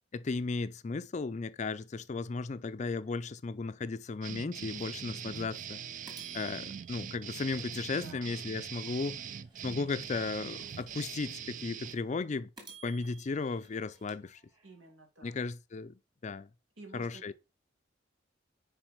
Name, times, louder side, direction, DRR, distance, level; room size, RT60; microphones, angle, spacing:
voice 1, 0.1-5.8 6.3-9.2 9.6-12.5 12.8-14.4 15.2-16.5 16.9-17.3, left 4 dB, 40° left, 0.4 m, -35 dB
sound 1, 4.2-12.0, right 8 dB, 45° right, 0.3 m, -42 dB
sound 2, 4.8-4.9 5.3-5.4 6.1-8.4 8.9-11.4 11.9-12.0 12.6-14.9, right 5 dB, 25° right, 2.4 m, -56 dB
voice 2, 8.0-8.4 14.6-15.3 16.8-17.3, right 2 dB, 85° right, 2.5 m, -52 dB
6.0 x 4.8 x 4.9 m
head